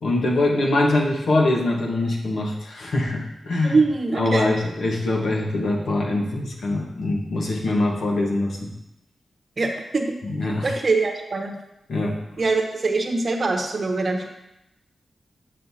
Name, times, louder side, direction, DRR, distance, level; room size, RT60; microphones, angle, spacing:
voice 1, 0.0-3.8 4.2-8.7 10.2-10.7 11.9-12.2, left 2 dB, 75° left, 0 dB, 1.2 m, -23 dB
voice 2, 3.6-4.5 9.6-11.6 12.4-14.3, right 3 dB, 45° right, 3 dB, 0.9 m, -23 dB
7.6 x 6.5 x 2.8 m, 0.88 s
wide cardioid pair, 110°, 0 cm